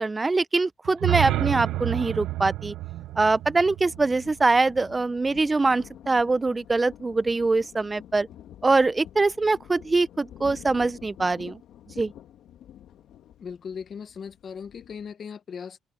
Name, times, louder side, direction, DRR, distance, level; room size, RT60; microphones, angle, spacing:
voice 1, 0.0-2.7 3.2-8.3 8.6-11.6 12.0-12.1, right 3 dB, 25° right, 0.6 m, -23 dB
sound 1, 0.8-4.9, right 16 dB, 85° right, 0.7 m, -30 dB
Thunder, 2.8-15.1, left 11 dB, 80° left, 2.3 m, -48 dB
voice 2, 13.4-15.8, left 6 dB, 50° left, 1.3 m, -38 dB
cardioid pair, 90°, 0 cm